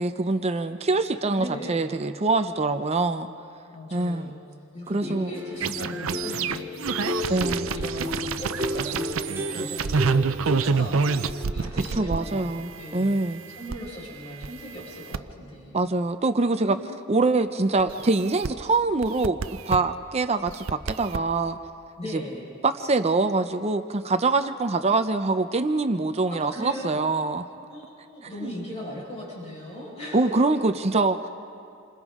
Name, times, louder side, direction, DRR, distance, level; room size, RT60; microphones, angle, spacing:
voice 1, 0.0-3.3 3.9-4.3 4.9-5.3 7.3-7.7 12.0-13.4 15.7-16.8 17.1-19.4 19.7-21.6 22.1-22.2 22.6-27.4 30.1-31.3, right 3 dB, 30° right, 8 dB, 0.6 m, -24 dB
voice 2, 1.3-1.9 3.7-4.4 4.7-12.4 12.7-15.8 16.6-17.0 22.0-22.5 26.3-27.0 27.7-30.5, left 1 dB, 30° left, -5 dB, 5.2 m, -38 dB
sound 1, 4.9-12.1 12.3-12.5, equal, 15° right, 3.4 m, -33 dB
sound 2, 5.6-13.8 14.4-15.2 17.8-18.5 19.0-19.8 20.5-21.2, right 5 dB, 75° right, 0.6 m, -27 dB
28.0 x 26.0 x 3.7 m, 2.6 s
head